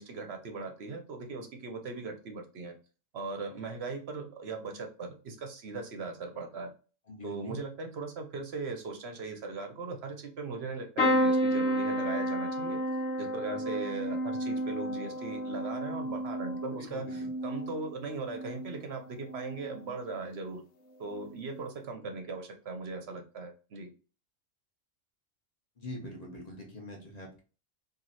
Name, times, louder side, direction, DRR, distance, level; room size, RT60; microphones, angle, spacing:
voice 1, 0.0-2.7 3.1-6.7 7.2-12.8 13.2-20.6 21.0-23.9, right 3 dB, 60° right, 5 dB, 0.8 m, -39 dB
voice 2, 7.1-7.6 16.8-17.3 25.8-27.4, left 1 dB, 35° left, 0 dB, 1.0 m, -43 dB
sound 1, 11.0-18.8 19.2-19.8 21.0-21.2 21.5-21.6, equal, 60° left, 1.1 m, -31 dB
3.1 x 2.6 x 4.0 m, 0.35 s
omnidirectional pair, 1.4 m